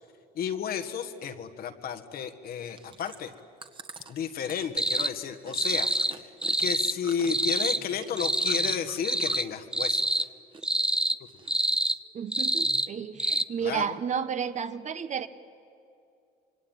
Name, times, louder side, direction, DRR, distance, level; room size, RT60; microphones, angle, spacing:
voice 1, 0.3-3.3 4.1-6.3 6.6-10.2 11.2-11.3 13.6-13.9, left 7 dB, 60° left, 8 dB, 1.8 m, -32 dB
Chewing mastication, 2.5-9.6 9.9-10.7 10.9-11.8 12.3-12.4, right 4 dB, 30° right, 1.7 m, -47 dB
sound 1, 4.8-5.1 5.5-6.1 6.4-7.0 7.3-7.8 8.2-8.8 9.0-9.5 9.7-10.3 10.6-11.2 11.5-12.0 12.3-12.9 13.2-13.4, right 1 dB, 5° right, 0.5 m, -26 dB
voice 2, 12.1-15.3, right 7 dB, 45° right, 11 dB, 1.3 m, -32 dB
26.0 x 22.5 x 9.2 m, 2.5 s
cardioid pair, 110°, 17 cm